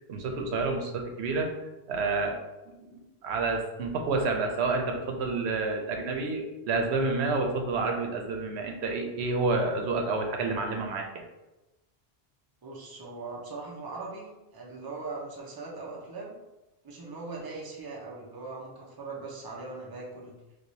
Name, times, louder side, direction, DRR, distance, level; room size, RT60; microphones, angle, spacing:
voice 1, 0.1-1.5 1.9-2.4 2.8-11.2, right 3 dB, 85° right, 3 dB, 0.9 m, -29 dB
voice 2, 12.6-16.4 16.8-20.3, right 3 dB, 25° right, -3 dB, 0.6 m, -40 dB
4.6 x 2.3 x 2.7 m, 1.0 s
omnidirectional pair, 1.1 m